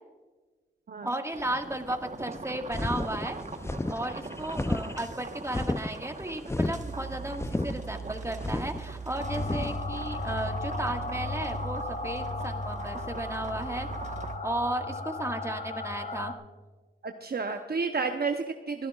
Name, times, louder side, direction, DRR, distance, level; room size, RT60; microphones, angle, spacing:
voice 1, 1.0-3.4 3.9-13.9 14.4-16.3, right 1 dB, 15° right, 4 dB, 1.7 m, -34 dB
sound 1, 1.3-14.4, right 4 dB, 35° right, 1.2 m, -40 dB
sound 2, 2.7-9.8, left 2 dB, 15° left, 0.5 m, -33 dB
sound 3, 9.2-16.3, left 3 dB, 40° left, 1.0 m, -35 dB
voice 2, 17.0-18.9, right 4 dB, 50° right, 5 dB, 0.8 m, -31 dB
27.0 x 11.5 x 2.4 m, 1.3 s
cardioid pair, 45°, 20 cm